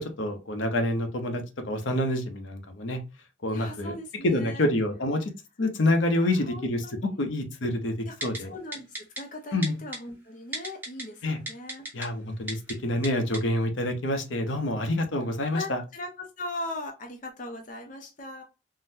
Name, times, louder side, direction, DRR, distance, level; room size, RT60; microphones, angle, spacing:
voice 1, 0.0-3.0 3.4-3.9 4.2-5.3 5.6-6.8 7.2-7.9 8.2-8.5 9.5-9.8 11.2-11.4 11.9-15.8, left 1 dB, 80° left, 6 dB, 0.7 m, -27 dB
voice 2, 3.5-4.7 6.2-7.2 8.1-11.9 15.5-18.4, left 2 dB, 40° left, 3 dB, 0.5 m, -39 dB
Typing, 8.2-8.4 8.7-9.2 9.6-10.0 10.5-11.0 11.5-12.1 12.5-12.7 13.0-13.1 13.3-13.4, right 1 dB, 10° right, 0.7 m, -33 dB
3.8 x 2.1 x 2.6 m, 0.29 s
head